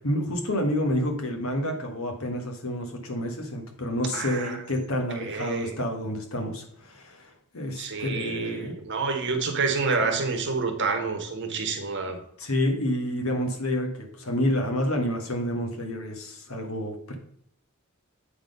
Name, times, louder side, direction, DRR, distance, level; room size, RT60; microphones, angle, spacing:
voice 1, 0.0-7.3 7.5-8.8 10.0-10.2 12.4-17.2, left 1 dB, 70° left, 3 dB, 1.4 m, -29 dB
voice 2, 4.1-4.6 5.1-5.7 7.8-12.2, right 4 dB, 55° right, 4 dB, 1.2 m, -28 dB
8.5 x 3.9 x 5.3 m, 0.71 s
head